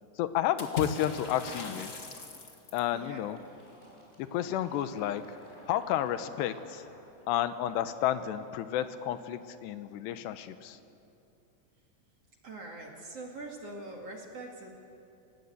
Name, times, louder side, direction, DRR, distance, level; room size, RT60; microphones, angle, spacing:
voice 1, 0.2-1.9 2.7-3.4 4.2-5.2 5.7-6.8 7.3-10.8, left 11 dB, 80° left, 11 dB, 3.0 m, -31 dB
Water / Splash splatter, 0.6-2.9, left 3 dB, 55° left, 0.8 m, -39 dB
voice 2, 2.9-3.2 12.4-14.7, right 2 dB, 45° right, 0 dB, 2.6 m, -43 dB
Fill (with liquid), 3.4-8.8, equal, 10° left, 5.0 m, -56 dB
30.0 x 17.5 x 8.3 m, 2.7 s
omnidirectional pair, 4.9 m